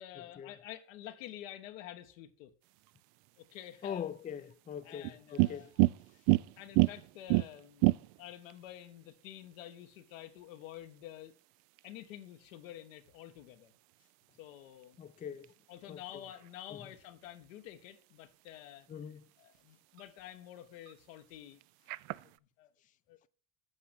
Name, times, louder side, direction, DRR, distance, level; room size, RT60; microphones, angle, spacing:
voice 1, 0.0-2.5 3.4-4.1 4.8-5.7 6.6-11.3 11.8-13.7 14.4-15.0 15.7-18.9 19.4-21.6 22.2-22.7 23.1-23.3, left 12 dB, 80° left, 1.1 m, -49 dB
sound 1, 2.6-22.4, right 21 dB, 65° right, 0.5 m, -36 dB
voice 2, 3.8-5.7 15.0-15.5 15.9-16.2 16.7-16.8 18.9-19.3, left 8 dB, 20° left, 0.4 m, -42 dB
8.6 x 5.0 x 5.8 m
hypercardioid pair, 75°, 39 cm